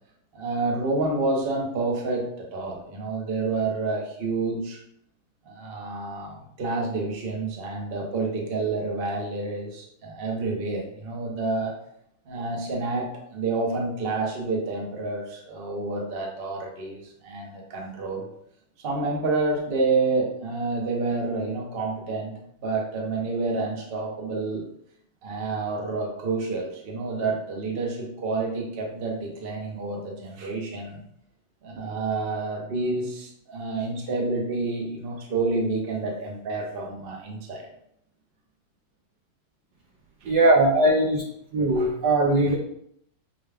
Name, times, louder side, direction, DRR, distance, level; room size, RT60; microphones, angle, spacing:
voice 1, 0.3-4.8 5.4-11.7 12.3-18.3 18.8-22.3 22.6-24.6 25.2-31.0 31.6-37.7 40.2-40.3, right 3 dB, 45° right, -1 dB, 0.7 m, -29 dB
voice 2, 40.3-41.2 41.5-42.6, right 1 dB, 70° right, -2 dB, 1.0 m, -20 dB
6.1 x 2.2 x 3.4 m, 0.71 s
omnidirectional pair, 2.3 m